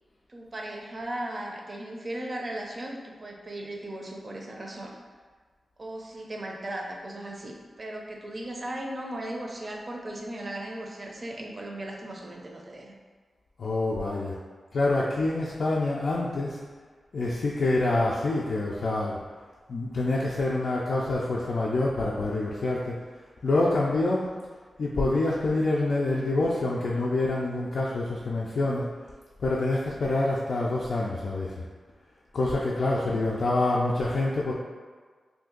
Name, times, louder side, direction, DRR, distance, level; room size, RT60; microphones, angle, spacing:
voice 1, 0.3-4.9 5.8-12.9 32.7-33.4, right 1 dB, 45° right, 0 dB, 0.5 m, -37 dB
voice 2, 13.6-14.4 14.7-16.6 17.1-19.2 19.7-22.9 23.4-24.3 24.8-28.9 29.4-31.6 32.3-34.5, left 2 dB, 70° left, -5 dB, 0.4 m, -26 dB
2.6 x 2.5 x 3.7 m, 1.5 s
cardioid pair, 70°, 0 cm